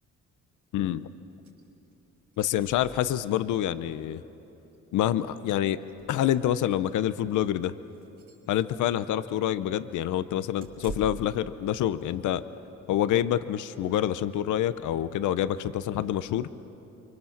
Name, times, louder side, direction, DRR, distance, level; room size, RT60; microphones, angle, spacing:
voice 1, 0.7-1.1 2.4-4.2 4.9-5.8 6.1-7.7 8.5-12.4 12.9-16.5, left 11 dB, 80° left, 13 dB, 0.8 m, -27 dB
sound 1, 1.4-1.6 1.9-2.0 2.2-3.5 4.7-4.8 5.2-5.3 5.8-6.8 7.2-7.5 7.9-8.5 10.6-11.4, right 2 dB, 80° right, 4.7 m, -45 dB
30.0 x 24.5 x 7.3 m, 3.0 s
cardioid pair, 90°, 30 cm